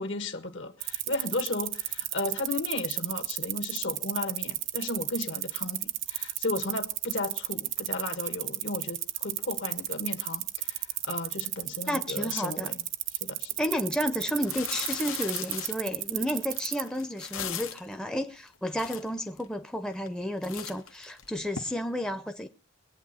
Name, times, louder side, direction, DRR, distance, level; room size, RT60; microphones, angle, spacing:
voice 1, 0.0-12.8 13.2-13.5, left 2 dB, 65° left, 1.6 m, -35 dB
sound 1, 0.8-16.9, right 16 dB, 70° right, 0.6 m, -32 dB
voice 2, 11.9-12.8 13.6-22.5, equal, 5° left, 0.6 m, -32 dB
sound 2, 13.6-13.7 14.2-17.9 18.5-18.6 18.7-19.4 19.9-20.2 20.4-21.6, left 9 dB, 85° left, 1.3 m, -38 dB
22.0 x 8.8 x 4.2 m
head